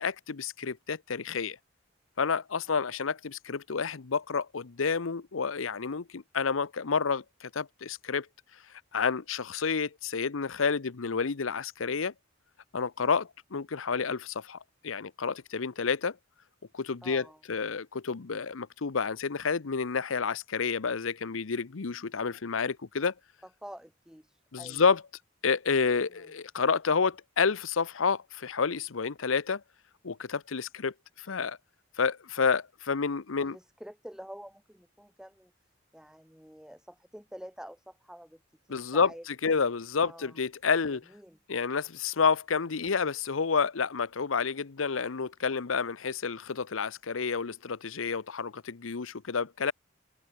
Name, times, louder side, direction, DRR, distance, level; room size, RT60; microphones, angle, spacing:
voice 1, 0.0-1.6 2.2-8.3 8.9-12.1 12.7-14.6 14.8-16.2 16.7-23.1 24.5-25.0 25.4-29.6 30.0-31.6 32.0-33.6 38.7-41.0 41.5-49.7, left 5 dB, 90° left, 0.8 m, -29 dB
voice 2, 17.0-17.4 23.4-24.9 26.1-26.3 33.4-35.5 35.9-39.2 40.0-40.4 40.9-41.4, equal, 5° right, 4.9 m, -48 dB
head